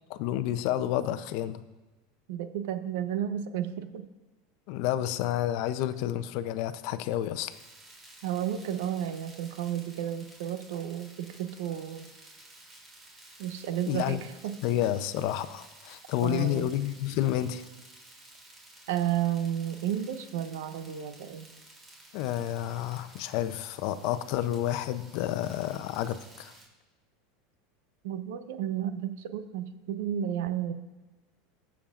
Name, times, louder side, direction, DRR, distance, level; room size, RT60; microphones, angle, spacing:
voice 1, 0.1-1.6 4.7-7.5 13.9-14.2 14.6-17.6 22.1-26.5, left 12 dB, 60° left, 12 dB, 0.6 m, -30 dB
voice 2, 2.3-4.0 8.2-12.1 13.4-14.5 16.2-16.7 18.9-21.5 28.0-30.7, right 10 dB, 80° right, 10 dB, 0.8 m, -32 dB
sound 1, 7.5-26.6, right 1 dB, 20° right, 3.2 m, -53 dB
20.5 x 7.1 x 2.5 m, 1.2 s
supercardioid pair, 125°, 0 cm